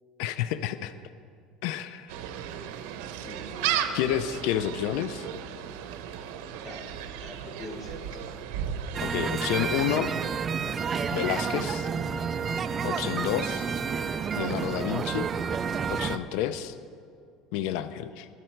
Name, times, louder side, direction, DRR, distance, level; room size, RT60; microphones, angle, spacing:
voice 1, 0.2-0.9 1.6-2.2 3.9-5.3 9.0-10.1 11.1-11.9 12.8-13.7 14.4-15.3 15.9-16.8 17.5-18.3, left 11 dB, 75° left, 12 dB, 0.5 m, -30 dB
Gull seagull, 2.1-9.9, right 9 dB, 90° right, 0.8 m, -35 dB
voice 2, 2.4-2.8 3.2-4.0 6.6-6.9 7.2-8.2, left 2 dB, 30° left, -2 dB, 3.0 m, -45 dB
sound 1, 8.9-16.2, right 6 dB, 25° right, 0.5 m, -30 dB
21.5 x 7.7 x 4.5 m, 2.3 s
cardioid pair, 155°, 0 cm